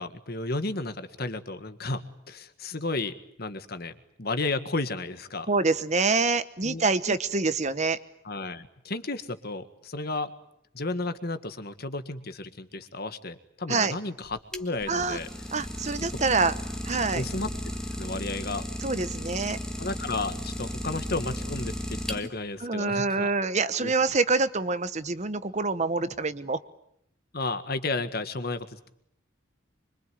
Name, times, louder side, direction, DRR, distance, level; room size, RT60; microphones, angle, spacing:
voice 1, 0.0-3.9 4.2-5.5 6.6-7.2 8.2-10.3 10.7-15.3 17.1-17.5 18.0-18.7 19.8-23.3 23.7-23.9 27.3-28.9, left 2 dB, 50° left, 10 dB, 1.7 m, -33 dB
voice 2, 5.5-8.0 13.7-13.9 14.9-15.2 15.5-16.5 16.8-17.2 18.8-19.6 22.6-26.6, right 3 dB, 35° right, 12 dB, 1.0 m, -26 dB
Idling, 14.2-22.6, equal, 5° left, 1.7 m, -35 dB
25.5 x 23.5 x 9.4 m, 0.75 s
head